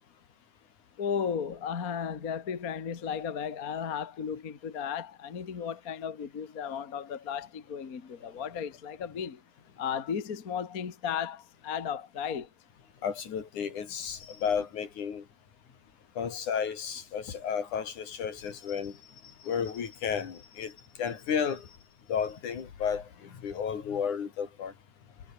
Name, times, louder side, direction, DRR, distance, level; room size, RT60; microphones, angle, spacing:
voice 1, 1.0-9.4 9.8-12.5, left 7 dB, 35° left, 1.8 m, -35 dB
voice 2, 13.0-15.2 16.2-19.0 19.4-21.7 22.1-24.7, left 7 dB, 75° left, 4.3 m, -33 dB
omnidirectional pair, 3.6 m